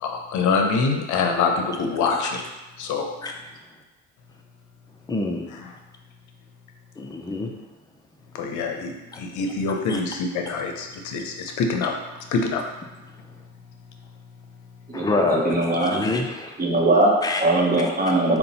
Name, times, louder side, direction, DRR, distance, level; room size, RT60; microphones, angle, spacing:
voice 1, 0.0-2.4 2.8-3.1 8.3-11.9 12.3-12.6, left 4 dB, 60° left, 3 dB, 0.7 m, -25 dB
voice 2, 5.1-5.5 7.0-7.5 9.1-9.2 9.9-10.0 14.9-16.6 17.2-17.5, left 2 dB, 10° left, 2 dB, 0.5 m, -26 dB
voice 3, 14.9-15.9 16.6-17.1 17.4-18.4, right 2 dB, 25° right, -2 dB, 1.1 m, -20 dB
3.9 x 2.3 x 4.1 m, 1.1 s
hypercardioid pair, 65°, 33 cm